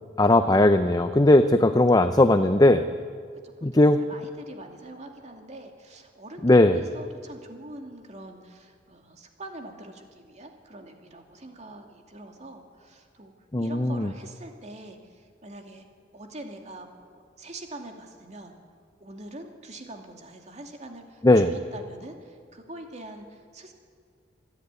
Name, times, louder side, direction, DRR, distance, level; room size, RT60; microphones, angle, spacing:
voice 1, 0.2-2.8 3.6-4.0 6.4-6.8 13.5-14.1 21.2-21.5, left 1 dB, 20° left, 9 dB, 0.6 m, -18 dB
voice 2, 3.4-13.3 13.6-15.9 16.1-18.5 19.0-23.7, right 1 dB, 40° right, 3 dB, 2.5 m, -44 dB
27.0 x 10.5 x 9.7 m, 2.1 s
head